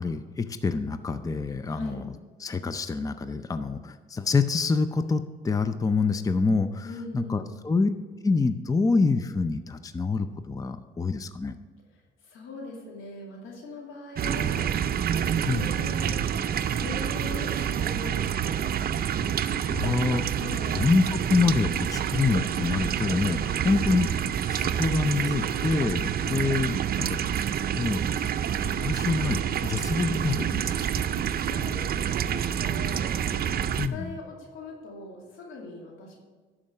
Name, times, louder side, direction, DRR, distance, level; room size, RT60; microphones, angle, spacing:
voice 1, 0.0-2.1 2.4-6.9 7.1-7.9 8.2-11.6 15.5-15.6 19.7-20.2 20.7-24.1 24.5-27.2 27.6-28.0 28.6-31.1 33.8-34.2, left 4 dB, 15° left, 10 dB, 0.5 m, -26 dB
voice 2, 1.7-2.0 6.8-7.6 12.2-14.8 15.0-16.2 16.8-18.8 20.3-20.8 26.2-26.6 31.3-36.2, left 3 dB, 90° left, -1 dB, 2.4 m, -41 dB
sound 1, 14.2-33.9, right 9 dB, 50° right, 0.5 m, -28 dB
12.0 x 5.0 x 6.5 m, 1.4 s
cardioid pair, 90°, 20 cm